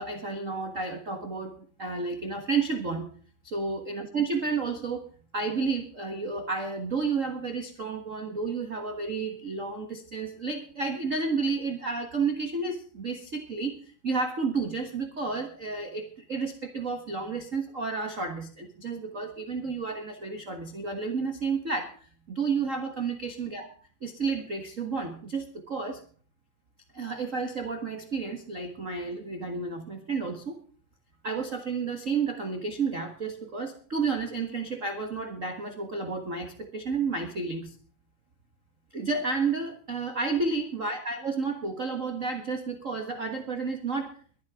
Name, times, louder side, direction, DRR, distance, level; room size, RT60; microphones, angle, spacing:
voice 1, 0.0-3.1 3.4-23.7 24.0-26.0 26.9-30.6 31.2-37.7 38.9-44.1, right 4 dB, 40° right, 5 dB, 1.1 m, -31 dB
23.5 x 10.0 x 3.7 m, 0.43 s
omnidirectional pair, 3.8 m